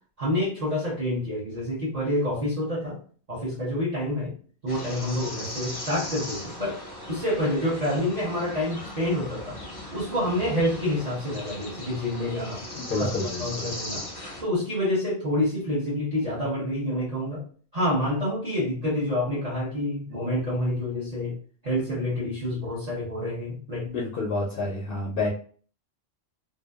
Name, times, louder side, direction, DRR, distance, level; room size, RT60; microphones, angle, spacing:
voice 1, 0.2-3.0 3.3-4.3 4.6-6.8 7.1-9.6 9.9-12.6 12.9-13.1 13.4-14.1 14.4-17.4 17.7-21.4 21.6-23.9, left 1 dB, 40° right, -8 dB, 0.9 m, -27 dB
sound 1, 4.7-14.4, left 1 dB, 25° left, 0.6 m, -38 dB
voice 2, 12.8-13.6 23.9-25.3, left 3 dB, 65° left, -3 dB, 0.7 m, -29 dB
2.6 x 2.2 x 2.2 m, 0.43 s
omnidirectional pair, 1.1 m